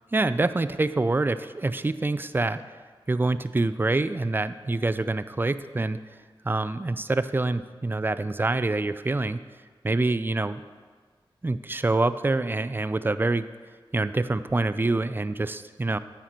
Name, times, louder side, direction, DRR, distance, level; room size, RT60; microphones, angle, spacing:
voice 1, 0.1-2.6 3.1-6.0 6.4-9.4 9.8-10.6 11.4-13.5 13.9-16.0, right 2 dB, 20° right, 13 dB, 0.3 m, -26 dB
9.0 x 4.4 x 6.0 m, 1.5 s
cardioid pair, 50°, 9 cm